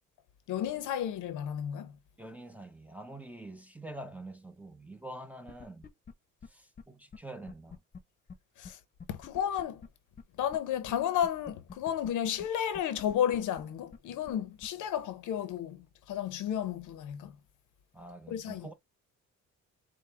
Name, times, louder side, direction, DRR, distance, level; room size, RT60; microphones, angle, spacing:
voice 1, 0.5-1.9 8.6-8.8 9.1-9.8 10.4-17.3 18.3-18.7, left 10 dB, 85° left, 0.8 m, -32 dB
voice 2, 2.2-5.9 6.4-7.8 17.9-18.7, right 1 dB, 5° right, 0.7 m, -46 dB
sound 1, 5.5-6.1 6.4-6.5 6.8-6.9 7.1-7.2 7.5-8.0 8.3-8.4 8.6-8.7 9.0-9.9 10.2-10.3 10.5-10.6 10.9-11.0 11.2-11.8 12.0-12.1 12.4-12.5 12.7-13.6 13.9-14.0 14.3-14.4 14.6-14.7, left 5 dB, 30° left, 0.9 m, -47 dB
4.7 x 2.3 x 3.4 m
cardioid pair, 90°, 30 cm